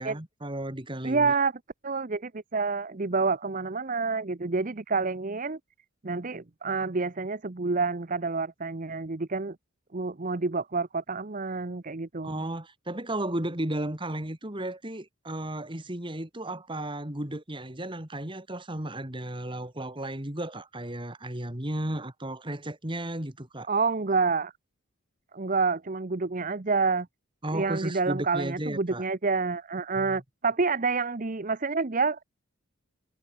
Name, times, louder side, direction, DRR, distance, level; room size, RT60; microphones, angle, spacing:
voice 1, 0.0-1.3 12.2-23.7 27.4-29.0 30.0-30.2, right 1 dB, 25° right, 2.4 m, -34 dB
voice 2, 1.0-1.5 1.8-5.6 6.0-9.6 9.9-12.5 23.7-24.5 25.3-27.1 27.5-32.2, right 4 dB, 40° right, 0.8 m, -28 dB
head